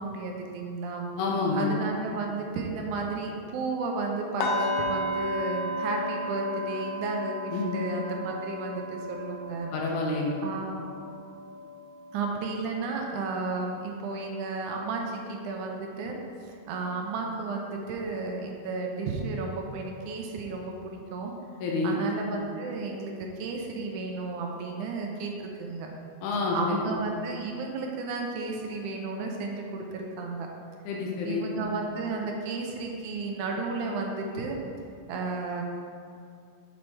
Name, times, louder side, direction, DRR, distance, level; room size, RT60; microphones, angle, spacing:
voice 1, 0.0-1.1 1.6-9.7 10.4-10.9 12.1-16.2 16.5-21.3 21.8-25.9 26.5-30.5 31.2-34.6 35.1-35.6, right 3 dB, 75° right, 1 dB, 2.0 m, -33 dB
voice 2, 1.1-1.7 7.5-7.7 9.7-10.4 21.6-22.0 26.2-26.8 30.9-31.4, left 3 dB, 70° left, -2 dB, 2.2 m, -28 dB
sound 1, 4.4-14.3 14.7-15.0 15.4-15.5, left 1 dB, 90° left, 1.4 m, -34 dB
7.8 x 4.2 x 4.4 m, 2.4 s
omnidirectional pair, 3.7 m